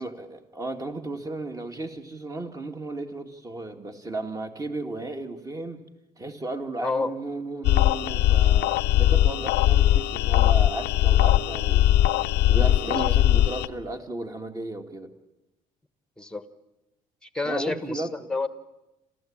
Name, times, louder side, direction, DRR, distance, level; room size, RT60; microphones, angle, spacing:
voice 1, 0.0-5.8 6.2-11.9 12.5-15.1 17.4-18.2, right 2 dB, 20° right, 5 dB, 2.3 m, -34 dB
voice 2, 6.8-7.1 12.8-13.1 16.2-16.4 17.2-18.5, left 3 dB, 5° left, 11 dB, 1.4 m, -29 dB
sound 1, 7.6-13.7, left 13 dB, 80° left, 0.7 m, -20 dB
27.5 x 14.5 x 8.9 m, 1.0 s
cardioid pair, 110°, 17 cm